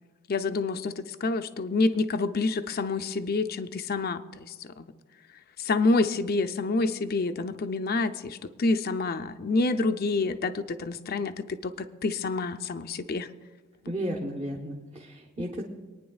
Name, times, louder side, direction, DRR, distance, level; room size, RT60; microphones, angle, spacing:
voice 1, 0.3-4.9 5.6-13.3, left 3 dB, 50° left, 9 dB, 0.6 m, -28 dB
voice 2, 13.8-15.6, equal, 25° right, -2 dB, 1.1 m, -33 dB
26.0 x 9.6 x 2.4 m, 1.3 s
head